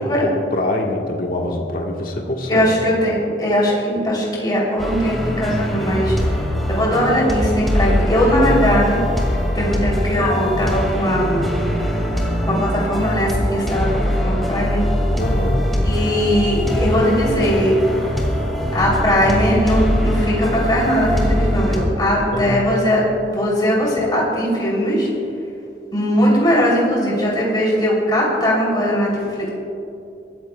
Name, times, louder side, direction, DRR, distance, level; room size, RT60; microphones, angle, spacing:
voice 1, 0.0-2.7 15.2-15.7 22.3-22.7, left 1 dB, 55° left, 0 dB, 1.4 m, -24 dB
voice 2, 2.5-6.1 6.7-9.0 9.5-11.5 12.5-13.9 14.2-14.8 15.8-17.8 18.7-25.1 25.9-29.1 29.4-29.5, equal, 25° left, -5 dB, 3.1 m, -19 dB
sound 1, 4.8-21.9, equal, ahead, 2.1 m, -21 dB
25.5 x 13.5 x 2.3 m, 2.7 s
head